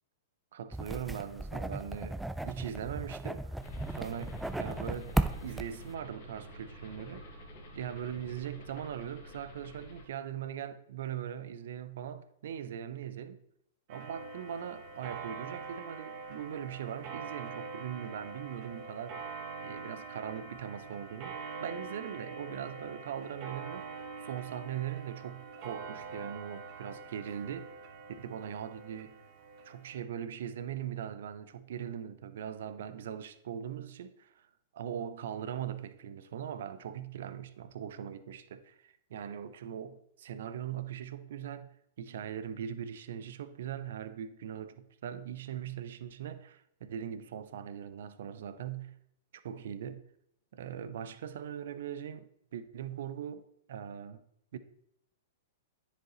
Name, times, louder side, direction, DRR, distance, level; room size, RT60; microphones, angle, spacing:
voice 1, 0.5-3.6 3.9-7.2 7.7-13.4 13.9-27.8 28.2-29.2 29.6-34.1 34.7-41.7 42.0-49.0 49.4-50.0 50.5-54.2 54.5-54.6, right 9 dB, 65° right, 0.5 m, -40 dB
sound 1, 0.7-5.9, right 1 dB, 5° right, 0.4 m, -36 dB
sound 2, 3.6-10.1, left 1 dB, 60° left, 1.6 m, -49 dB
Clock, 13.9-30.0, right 4 dB, 45° right, 1.6 m, -44 dB
9.9 x 5.0 x 3.0 m
hypercardioid pair, 115°, 0 cm